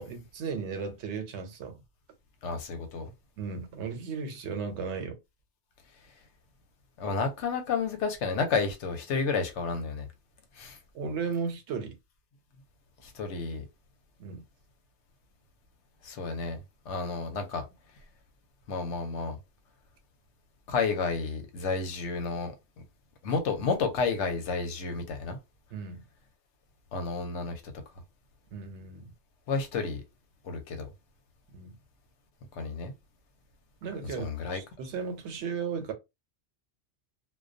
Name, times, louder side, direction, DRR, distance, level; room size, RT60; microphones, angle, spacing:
voice 1, 0.0-1.8 3.4-5.2 10.9-12.0 14.2-14.4 25.7-26.0 28.5-29.1 31.5-31.8 33.8-35.9, right 5 dB, 85° right, 0.9 m, -35 dB
voice 2, 2.4-3.1 7.0-10.1 10.6-10.8 13.0-13.6 16.0-16.6 16.9-17.6 18.7-19.4 20.7-22.5 23.2-25.4 26.9-27.7 29.5-30.0 30.4-30.9 32.5-32.9 34.2-34.6, left 4 dB, 85° left, 1.0 m, -31 dB
2.2 x 2.2 x 2.5 m
omnidirectional pair, 1.2 m